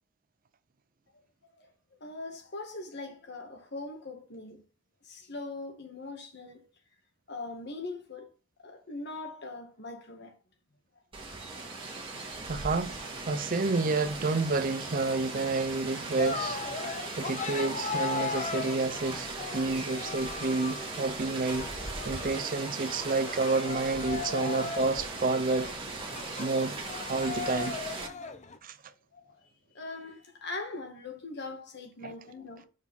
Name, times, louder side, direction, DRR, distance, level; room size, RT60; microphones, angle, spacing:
voice 1, 2.0-4.7 5.0-6.7 7.3-8.3 8.6-10.4 11.9-12.4 29.1-32.7, left 3 dB, 55° left, 1.8 m, -41 dB
Rain, 11.1-28.1, right 3 dB, 25° right, 1.8 m, -38 dB
voice 2, 12.5-21.7 22.0-25.7 26.4-26.8 27.1-27.8 28.6-28.8 32.0-32.1, right 3 dB, 45° right, 0.6 m, -30 dB
Cheering, 16.2-28.6, left 4 dB, 35° left, 0.7 m, -38 dB
6.2 x 4.7 x 5.5 m
head